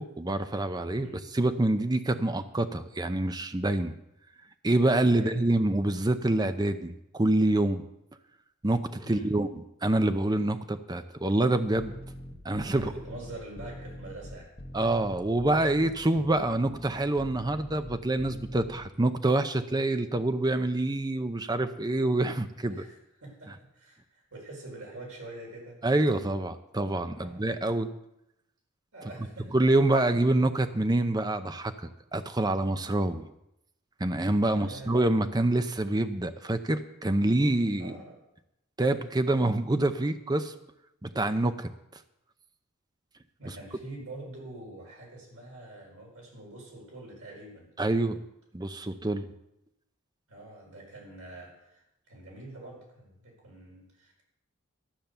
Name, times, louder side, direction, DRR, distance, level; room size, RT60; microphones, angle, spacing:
voice 1, 0.0-1.1 1.3-3.9 4.6-7.8 8.6-9.5 9.8-11.9 12.4-12.9 14.7-22.8 25.8-27.9 29.5-33.3 34.0-37.9 38.8-40.5 41.0-41.7 47.8-48.2 48.5-49.3, right 2 dB, 20° right, 9 dB, 0.6 m, -26 dB
sound 1, 11.8-18.8, equal, 25° left, 1.1 m, -43 dB
voice 2, 12.7-14.5 22.7-25.8 27.1-27.5 28.9-29.6 34.4-35.0 37.8-38.2 43.4-47.7 50.3-54.2, right 2 dB, 80° right, -1 dB, 4.6 m, -45 dB
13.0 x 7.2 x 6.8 m, 0.83 s
head